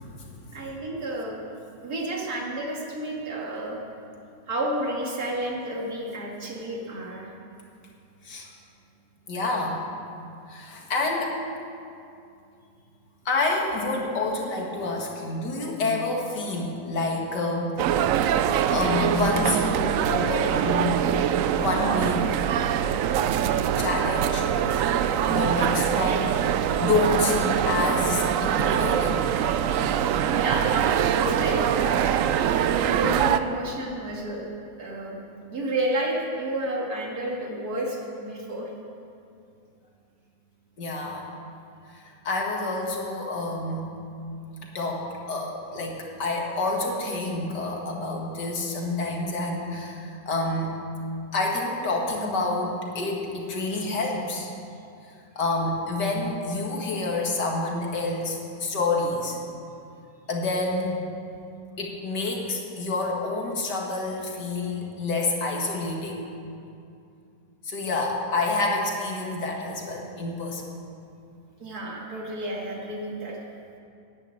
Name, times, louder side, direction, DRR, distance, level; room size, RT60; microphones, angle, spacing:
voice 1, 0.0-0.6 8.2-8.5 9.3-9.8 10.5-11.4 13.3-18.0 18.7-21.0 21.6-22.3 23.8-24.5 25.3-29.2 40.8-41.3 41.9-43.9 44.6-50.8 51.3-54.5 55.4-59.4 60.3-61.1 61.8-66.2 67.6-70.6, left 2 dB, 65° left, 0 dB, 2.4 m, -28 dB
voice 2, 0.5-1.4 1.8-3.8 4.5-7.3 24.8-25.4 30.0-34.5 34.8-35.2 35.5-38.7 71.6-73.4, right 1 dB, 55° right, -2 dB, 2.5 m, -31 dB
sound 1, 17.8-33.4, right 9 dB, 85° right, 0.7 m, -23 dB
11.0 x 9.9 x 8.5 m, 2.6 s
omnidirectional pair, 2.0 m